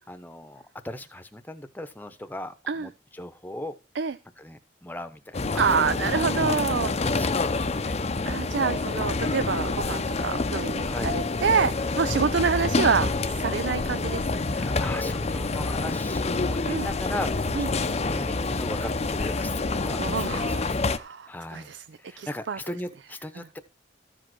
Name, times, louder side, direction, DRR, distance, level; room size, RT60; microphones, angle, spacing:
voice 1, 0.1-3.8 4.4-6.0 6.8-8.0 10.8-11.1 14.5-20.8 21.3-23.6, left 1 dB, 10° left, 1.0 m, -38 dB
sound 1, 5.3-21.0, left 3 dB, 35° left, 0.7 m, -27 dB
voice 2, 5.6-7.0 8.3-14.3 16.7-16.9 17.6-17.7 20.0-21.8 22.2-22.6, right 5 dB, 70° right, 0.5 m, -27 dB
14.0 x 5.1 x 6.2 m
head